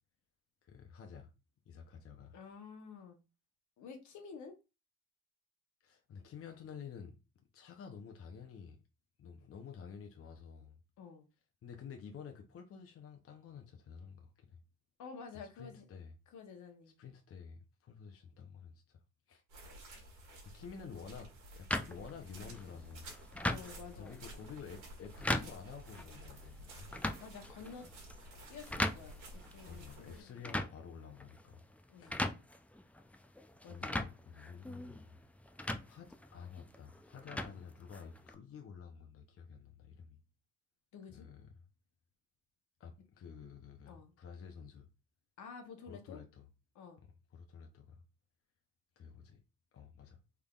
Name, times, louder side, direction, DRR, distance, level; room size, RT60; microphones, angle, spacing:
voice 1, 0.6-1.3 1.7-2.4 5.8-8.8 9.2-10.8 11.6-14.6 15.3-16.1 17.0-19.0 19.3-19.4 20.4-23.1 23.9-26.9 29.7-31.6 32.0-32.2 33.7-35.2 35.9-40.2 41.1-41.6 42.8-44.9 45.9-46.5 47.0-48.0 49.0-49.4 49.7-50.2, left 6 dB, 50° left, 0.7 m, -51 dB
voice 2, 2.3-3.2 3.8-4.5 11.0-11.3 15.0-15.8 16.3-17.0 23.4-24.1 27.1-27.9 28.5-30.4 31.9-32.2 33.6-34.1 40.9-41.3 43.9-44.1 45.4-46.2 46.7-47.0, left 5 dB, 75° left, 1.0 m, -50 dB
sound 1, 19.5-30.2, right 1 dB, 90° right, 1.6 m, -53 dB
sound 2, 21.7-38.3, left 1 dB, 5° left, 0.3 m, -41 dB
3.6 x 3.5 x 2.3 m
cardioid pair, 90°, 30 cm